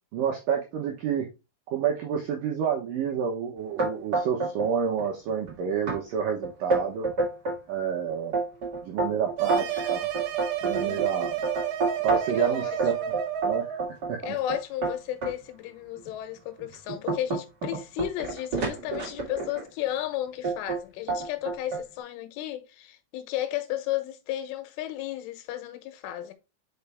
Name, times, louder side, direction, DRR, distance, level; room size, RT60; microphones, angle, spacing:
voice 1, 0.1-1.3 1.7-7.1 7.7-8.4 8.8-10.1 10.6-11.3 12.0-13.0 13.4-13.7 14.1-14.2, right 7 dB, 90° right, 1.9 m, -29 dB
sound 1, 3.8-4.7 5.0-5.5 5.9-6.0 6.4-7.6 8.1-12.4 12.8-15.3 16.0-16.1 16.6-19.7 20.4-20.8 21.1-21.8, right 3 dB, 60° right, 1.0 m, -29 dB
sound 2, 9.4-13.9, right 11 dB, 75° right, 2.4 m, -31 dB
voice 2, 10.8-11.2 12.3-13.1 14.2-26.3, left 12 dB, 85° left, 3.5 m, -34 dB
5.8 x 5.6 x 3.5 m
omnidirectional pair, 5.5 m